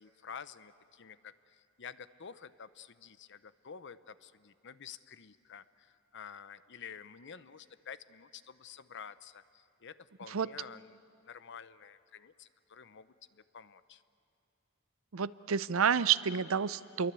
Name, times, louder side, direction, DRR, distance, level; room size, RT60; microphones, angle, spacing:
voice 1, 0.0-14.0, left 7 dB, 60° left, 14 dB, 0.8 m, -50 dB
voice 2, 15.1-17.1, right 7 dB, 70° right, 16 dB, 0.6 m, -29 dB
28.5 x 23.0 x 8.4 m, 2.5 s
head